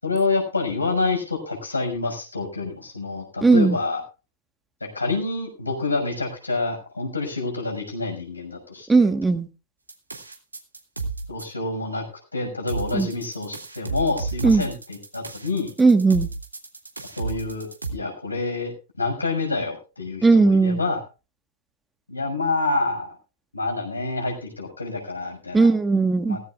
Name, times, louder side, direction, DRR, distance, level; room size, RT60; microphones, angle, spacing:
voice 1, 0.0-4.0 4.8-9.1 11.3-12.0 12.3-15.7 17.0-18.7 19.0-21.0 22.1-23.2 23.5-25.7 26.3-26.4, left 3 dB, 85° left, 1 dB, 6.5 m, -27 dB
voice 2, 3.4-3.8 8.9-9.5 12.9-13.1 14.4-14.6 15.8-16.3 20.2-20.8 25.5-26.4, right 4 dB, 10° right, 8 dB, 1.5 m, -17 dB
sound 1, 9.9-11.4 12.7-17.9, right 3 dB, 85° right, 2.7 m, -32 dB
17.5 x 16.0 x 2.5 m, 0.32 s
figure-of-eight pair, 105°, 0 cm